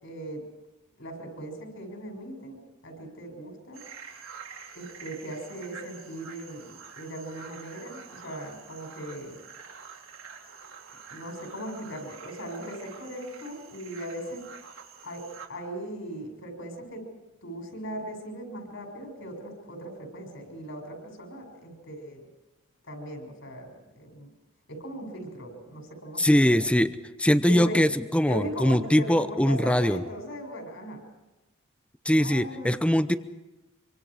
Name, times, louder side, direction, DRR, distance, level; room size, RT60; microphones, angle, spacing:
voice 1, 0.0-0.4 1.0-3.8 4.7-9.4 11.1-14.4 15.0-17.0 17.4-22.2 22.8-24.3 24.7-26.5 27.5-27.8 28.2-31.0 32.2-32.7, equal, 70° left, 3 dB, 6.6 m, -38 dB
sound 1, 3.7-15.5, right 6 dB, 80° right, 3.6 m, -47 dB
voice 2, 26.2-26.9 27.2-30.0 32.0-33.2, equal, 5° left, 12 dB, 0.7 m, -22 dB
26.0 x 25.0 x 5.0 m, 1.0 s
head